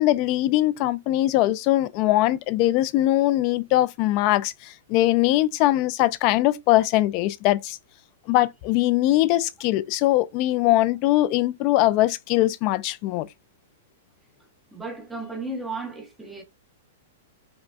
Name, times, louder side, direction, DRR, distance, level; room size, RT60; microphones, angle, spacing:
voice 1, 0.0-7.8 8.3-13.3, left 15 dB, 40° left, 0.4 m, -21 dB
voice 2, 14.7-16.4, right 2 dB, 5° right, 0.8 m, -34 dB
5.0 x 2.1 x 2.3 m
hypercardioid pair, 150°, 0 cm